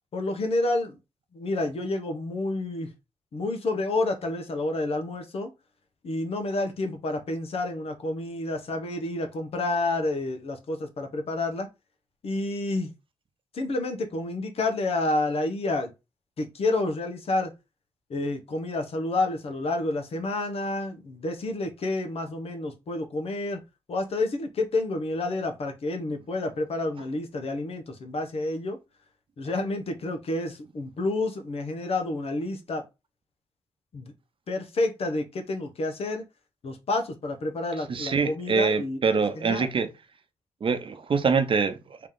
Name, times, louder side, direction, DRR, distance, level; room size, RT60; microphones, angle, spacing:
voice 1, 0.1-1.0 1.3-2.9 3.3-5.5 6.0-11.7 12.2-12.9 13.5-15.9 16.4-17.5 18.1-23.6 23.9-28.8 29.4-32.8 33.9-34.1 34.5-36.2 36.6-39.7, left 2 dB, 65° left, 1.0 m, -29 dB
voice 2, 37.9-39.9 40.6-42.1, right 5 dB, 50° right, 0.8 m, -25 dB
3.3 x 2.9 x 3.8 m
supercardioid pair, 55°, 11 cm